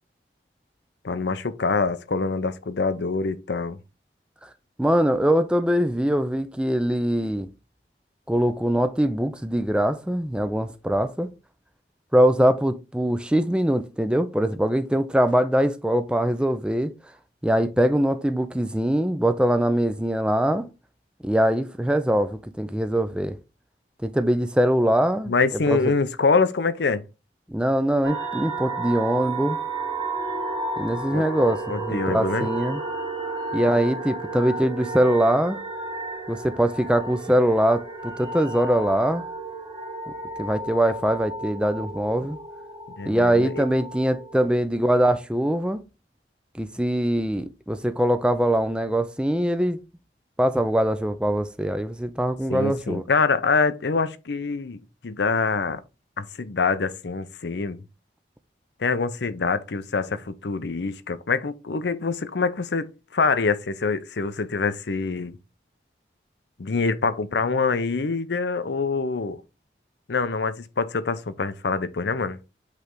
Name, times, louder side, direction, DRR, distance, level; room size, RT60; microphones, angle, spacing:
voice 1, 1.0-3.8 25.3-27.0 31.1-31.2 31.7-32.5 43.0-43.6 52.5-55.8 56.2-57.8 58.8-65.4 66.6-69.4 70.1-72.4, left 4 dB, 80° left, 0.6 m, -25 dB
voice 2, 4.8-7.5 8.3-11.3 12.1-16.9 17.4-20.7 21.2-23.4 24.0-25.3 25.7-25.8 27.5-29.6 30.8-32.8 33.5-35.6 36.3-39.2 40.4-42.4 43.1-45.8 46.6-49.8 50.4-53.0, right 1 dB, 5° right, 0.4 m, -22 dB
sound 1, 28.0-44.5, right 2 dB, 25° right, 1.4 m, -32 dB
8.1 x 3.3 x 3.8 m
head